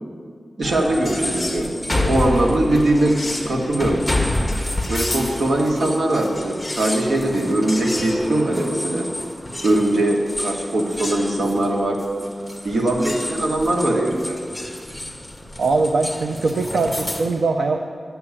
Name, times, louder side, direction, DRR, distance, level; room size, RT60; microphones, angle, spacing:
sound 1, 0.6-17.2, left 1 dB, 5° left, 1.6 m, -29 dB
voice 1, 0.6-3.2 3.5-4.0 4.9-9.1 9.6-12.0 12.6-14.4, right 1 dB, 70° right, 0 dB, 1.7 m, -21 dB
voice 2, 15.6-17.8, right 3 dB, 90° right, 4 dB, 0.6 m, -21 dB
11.0 x 6.8 x 8.6 m, 2.1 s
wide cardioid pair, 90°, 0 cm